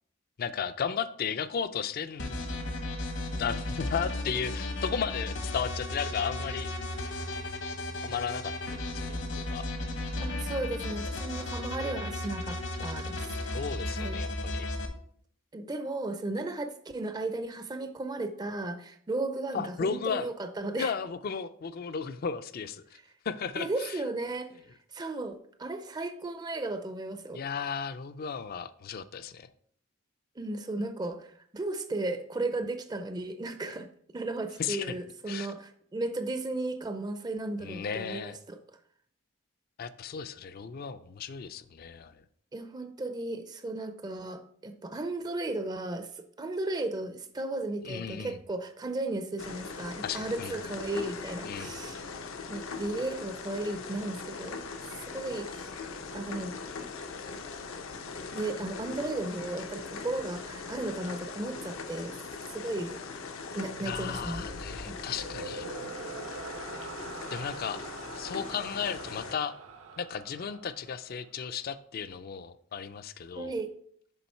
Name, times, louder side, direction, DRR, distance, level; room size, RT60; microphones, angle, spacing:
voice 1, 0.4-2.5 3.3-6.7 8.0-9.6 13.5-14.7 19.5-20.3 20.7-23.0 23.2-24.0 27.3-29.5 34.6-35.0 35.3-35.5 37.6-38.4 39.8-42.2 47.8-48.4 50.0-50.7 51.4-51.8 63.8-65.7 67.3-67.8 68.1-69.6 70.0-73.6, left 6 dB, 45° left, 13 dB, 0.4 m, -35 dB
sound 1, 2.2-14.9, left 2 dB, 60° left, 0.9 m, -35 dB
voice 2, 10.2-13.6 14.0-14.2 15.5-20.9 23.6-24.5 24.9-27.4 30.4-33.9 34.1-38.6 42.5-46.1 46.4-52.0 52.5-54.6 55.0-55.7 56.1-56.5 58.3-62.1 62.5-63.0 63.5-64.4 64.9-65.0 73.4-73.7, right 2 dB, 20° right, 8 dB, 0.4 m, -35 dB
sound 2, 49.4-69.3, left 4 dB, 80° left, 0.7 m, -41 dB
sound 3, 63.9-71.3, right 3 dB, 85° right, 0.8 m, -44 dB
7.0 x 3.8 x 4.3 m, 0.63 s
head